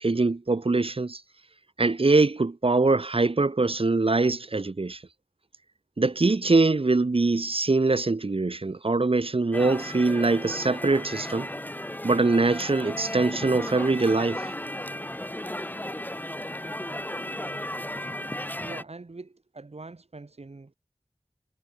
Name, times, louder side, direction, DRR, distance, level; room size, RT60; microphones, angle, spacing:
voice 1, 0.0-1.2 1.8-5.0 6.0-11.5 12.0-14.5, right 3 dB, 60° right, 1.0 m, -23 dB
sound 1, 9.5-18.8, left 1 dB, 15° left, 1.7 m, -35 dB
voice 2, 18.6-20.7, right 3 dB, 80° right, 2.3 m, -43 dB
wide cardioid pair, 50°, 11 cm